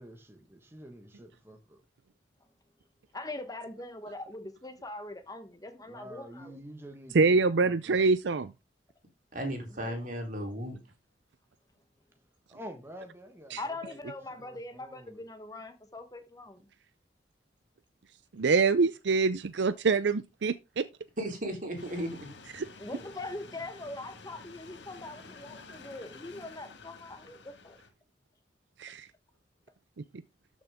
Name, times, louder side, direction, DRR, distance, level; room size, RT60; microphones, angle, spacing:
voice 1, 0.0-1.8 5.8-8.0 12.5-15.3, equal, 15° right, 1.4 m, -48 dB
voice 2, 3.1-6.6 9.7-10.0 13.6-16.6 22.8-27.8, left 2 dB, 20° left, 1.1 m, -42 dB
voice 3, 7.1-8.5 13.5-13.6 18.3-20.8 22.5-22.7 28.8-29.1, right 4 dB, 70° right, 0.5 m, -25 dB
voice 4, 9.3-10.8 21.2-22.4, equal, 45° right, 3.5 m, -35 dB
sound 1, 21.8-27.9, left 4 dB, 75° left, 1.8 m, -50 dB
13.0 x 6.2 x 3.6 m
head